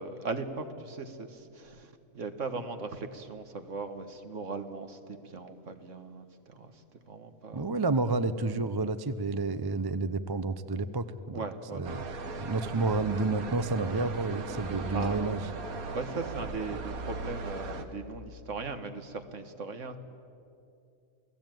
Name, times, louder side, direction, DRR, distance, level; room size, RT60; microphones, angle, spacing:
voice 1, 0.0-6.8 7.1-7.8 11.3-12.0 12.7-12.9 14.9-15.3 15.9-20.0, right 4 dB, 60° right, 8 dB, 1.8 m, -38 dB
voice 2, 7.5-11.4 11.7-12.0 12.4-15.4 16.7-16.8, right 3 dB, 25° right, 12 dB, 0.6 m, -30 dB
sound 1, 11.8-17.8, right 4 dB, 80° right, 1.9 m, -38 dB
28.0 x 18.0 x 9.2 m, 2.6 s
omnidirectional pair, 1.5 m